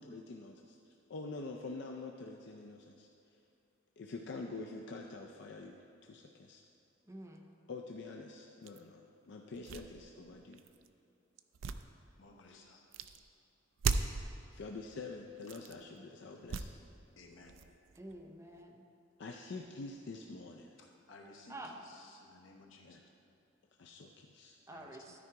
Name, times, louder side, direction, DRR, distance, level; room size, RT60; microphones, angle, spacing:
voice 1, 0.0-0.6 1.1-3.1 4.0-6.6 7.7-10.6 12.4-12.7 14.5-16.7 19.2-20.8 22.8-23.0 23.8-24.6, left 3 dB, 60° left, 2 dB, 0.4 m, -46 dB
voice 2, 7.1-7.4 18.0-18.9 21.5-21.7 24.7-25.2, right 1 dB, 15° right, 2 dB, 0.5 m, -48 dB
sound 1, 8.7-8.8 9.5-10.9 11.4-12.5 12.9-13.2 13.8-14.3 15.4-15.8 16.4-17.0 17.3-18.6, right 5 dB, 70° right, 0.4 m, -38 dB
voice 3, 12.2-12.8 17.2-17.6 21.1-21.5 22.2-23.0 24.7-24.9, left 3 dB, 75° left, 1 dB, 1.0 m, -57 dB
12.5 x 4.8 x 4.6 m, 2.6 s
head